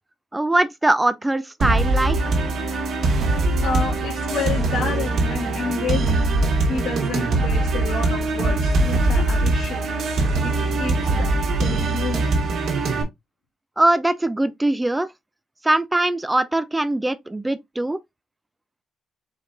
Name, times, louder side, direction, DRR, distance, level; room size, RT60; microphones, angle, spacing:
voice 1, 0.3-2.4 13.8-15.1 15.6-18.0, right 2 dB, 10° right, 0.4 m, -21 dB
sound 1, 1.6-13.0, right 2 dB, 65° right, 1.8 m, -22 dB
voice 2, 3.6-6.2 6.6-9.8 10.4-11.3 11.6-12.2, left 4 dB, 75° left, 2.1 m, -30 dB
4.8 x 4.1 x 2.7 m
cardioid pair, 90°, 0 cm